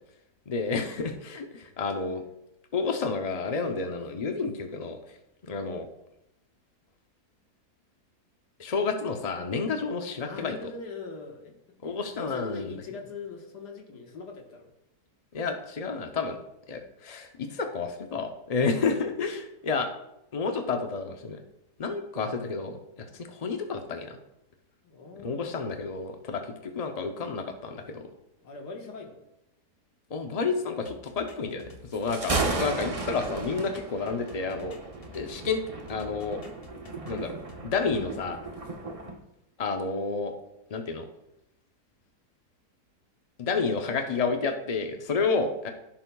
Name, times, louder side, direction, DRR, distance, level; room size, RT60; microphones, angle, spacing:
voice 1, 0.5-2.2 2.7-5.0 5.4-5.9 8.6-10.5 11.8-12.7 15.3-16.4 16.7-19.9 20.3-21.4 21.8-22.8 23.1-24.2 25.2-28.0 30.1-34.8 35.1-35.6 35.9-36.4 37.1-37.4 37.6-38.4 39.6-40.3 40.7-41.1 43.4-45.7, left 4 dB, 60° left, 4 dB, 0.3 m, -30 dB
voice 2, 10.2-11.5 11.8-14.7 24.8-25.5 28.4-29.2, left 4 dB, 90° left, 2 dB, 1.9 m, -41 dB
sound 1, 30.8-35.6 35.9-37.6, left 4 dB, 45° left, 0.9 m, -50 dB
Thunder, 31.9-39.2, right 3 dB, 35° right, 0.6 m, -35 dB
15.0 x 7.5 x 2.3 m, 0.86 s
omnidirectional pair, 1.7 m